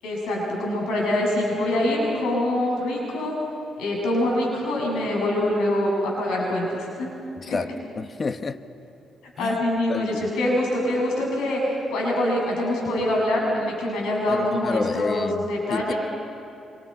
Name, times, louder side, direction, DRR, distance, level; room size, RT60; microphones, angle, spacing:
voice 1, 0.0-3.3 3.8-7.1 7.5-7.6 9.4-11.6 11.9-16.0, left 1 dB, 85° left, -2 dB, 7.3 m, -24 dB
voice 2, 7.9-8.6 9.4-9.6 9.9-10.3 14.3-15.9, left 4 dB, 35° left, 10 dB, 1.0 m, -29 dB
26.0 x 25.5 x 5.6 m, 2.9 s
cardioid pair, 90°, 0 cm